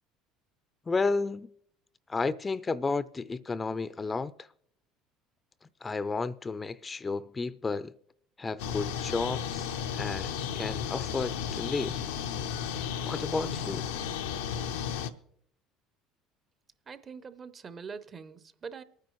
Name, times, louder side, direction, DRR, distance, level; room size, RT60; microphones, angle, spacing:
voice 1, 0.9-1.5 2.1-4.3 5.8-7.9 8.4-9.7 9.9-12.0 13.1-13.9, left 4 dB, 25° left, 0.4 m, -32 dB
sound 1, 8.6-15.1, left 8 dB, 90° left, 0.7 m, -34 dB
voice 2, 16.9-18.8, right 5 dB, 35° right, 0.7 m, -43 dB
24.0 x 9.6 x 3.1 m
supercardioid pair, 85°, 0 cm